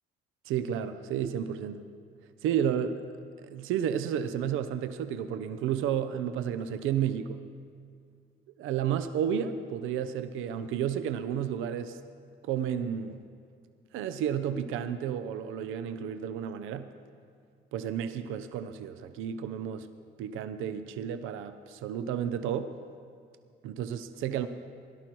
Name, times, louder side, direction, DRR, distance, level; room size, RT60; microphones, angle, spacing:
voice 1, 0.5-1.8 2.4-2.9 3.4-7.4 8.6-12.0 12.4-13.2 13.9-16.9 17.7-19.9 20.2-22.7 23.6-24.5, right 9 dB, 80° right, 10 dB, 0.6 m, -32 dB
17.0 x 11.5 x 4.6 m, 2.2 s
supercardioid pair, 70°, 20 cm